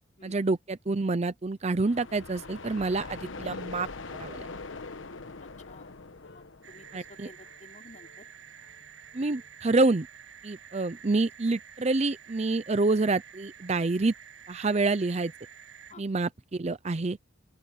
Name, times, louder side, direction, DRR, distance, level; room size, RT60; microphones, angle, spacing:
voice 1, 0.2-3.9 4.2-4.5 6.9-7.3 9.1-10.1 10.4-14.1 14.5-15.3 16.0-17.2, right 3 dB, 35° right, 0.5 m, -27 dB
sound 1, 1.8-7.5, left 3 dB, 85° left, 1.1 m, -42 dB
Wind instrument woodwind instrument, 6.2-10.2, left 2 dB, 65° left, 5.9 m, -62 dB
voice 2, 6.3-8.3 15.9-16.0, left 2 dB, 40° left, 5.1 m, -52 dB
sound 2, 6.6-15.9, right 8 dB, 75° right, 1.4 m, -50 dB
open air
head